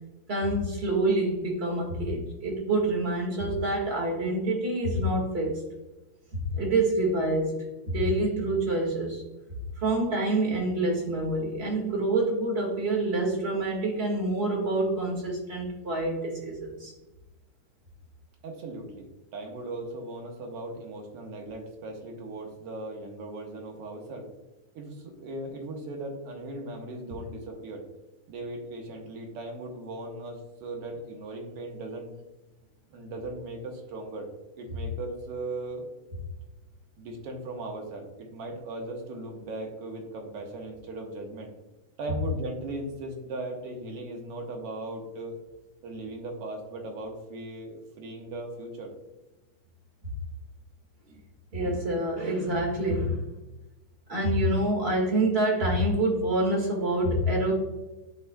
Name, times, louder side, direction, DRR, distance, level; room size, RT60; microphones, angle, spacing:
voice 1, 0.3-5.5 6.3-7.5 7.8-9.2 9.8-16.9 51.5-53.2 54.1-57.5, right 1 dB, 25° right, -3 dB, 1.4 m, -27 dB
voice 2, 18.4-24.2 24.7-27.9 28.3-32.1 32.9-34.3 34.6-35.9 37.0-41.5 42.0-45.4 45.8-48.9, right 2 dB, 60° right, 1 dB, 1.8 m, -38 dB
11.5 x 3.9 x 2.3 m, 1.0 s
omnidirectional pair, 3.5 m